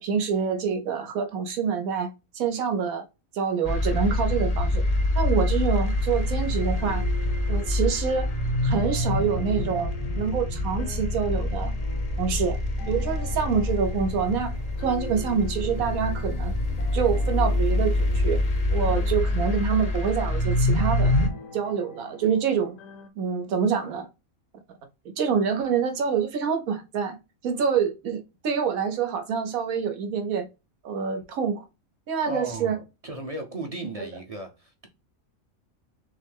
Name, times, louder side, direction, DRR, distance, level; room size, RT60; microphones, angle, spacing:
voice 1, 0.0-3.0 3.3-4.8 5.1-7.0 7.5-8.3 8.6-11.7 12.2-12.6 12.9-14.5 14.8-16.5 16.9-18.4 18.7-21.1 21.5-22.8 23.2-24.1 25.2-27.2 27.4-30.5 30.8-31.6 32.1-32.8, right 6 dB, 85° right, 1.3 m, -26 dB
sound 1, 3.6-21.3, left 1 dB, 40° left, 0.6 m, -26 dB
sound 2, 6.0-23.1, left 4 dB, 70° left, 1.1 m, -44 dB
voice 2, 32.3-34.9, right 2 dB, 35° right, 0.6 m, -36 dB
6.2 x 2.1 x 3.4 m
omnidirectional pair, 1.4 m